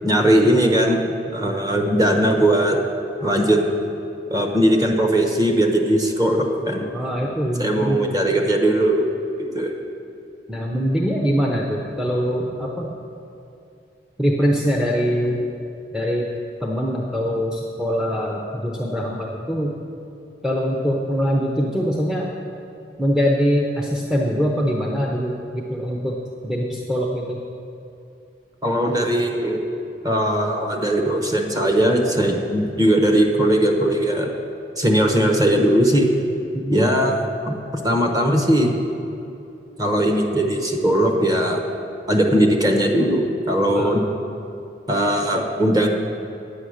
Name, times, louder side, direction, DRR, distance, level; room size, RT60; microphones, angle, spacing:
voice 1, 0.0-2.8 3.2-3.6 4.3-6.9 7.6-9.1 9.4-9.7 28.6-29.6 30.0-34.3 34.8-36.1 36.7-38.7 39.8-41.6 42.1-44.1 44.9-45.9, right 1 dB, 20° right, 3 dB, 1.0 m, -19 dB
voice 2, 6.9-8.0 10.5-12.9 14.2-15.4 15.9-16.3 16.6-19.8 20.4-22.3 23.0-26.1 26.4-27.4 36.5-36.9 43.7-44.0, equal, 5° right, -2 dB, 0.7 m, -23 dB
9.2 x 8.7 x 6.4 m, 2.7 s
head